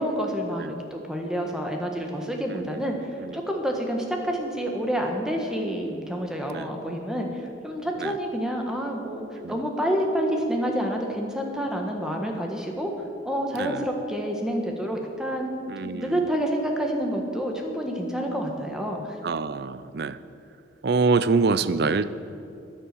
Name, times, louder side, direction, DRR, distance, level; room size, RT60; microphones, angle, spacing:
voice 1, 0.0-12.9 13.2-15.5 15.8-19.2, equal, 5° right, 1 dB, 1.5 m, -28 dB
voice 2, 2.5-2.9 3.2-3.4 6.5-6.7 8.0-8.2 9.4-9.7 13.5-13.9 15.7-16.2 19.2-20.2 20.8-22.2, right 4 dB, 60° right, 15 dB, 0.5 m, -26 dB
10.5 x 10.5 x 8.4 m, 2.7 s
head